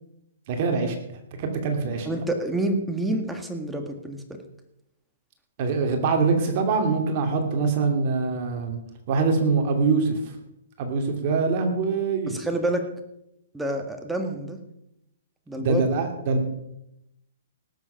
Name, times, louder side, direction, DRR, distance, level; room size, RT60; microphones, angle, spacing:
voice 1, 0.5-1.0 1.4-2.1 5.6-8.8 9.1-10.4 10.8-12.3 15.6-16.5, right 4 dB, 45° right, 4 dB, 2.6 m, -24 dB
voice 2, 2.1-4.4 12.3-12.9 13.5-14.6 15.5-15.8, right 1 dB, 5° right, 4 dB, 1.8 m, -28 dB
18.5 x 7.9 x 5.8 m, 0.82 s
hypercardioid pair, 150°, 0 cm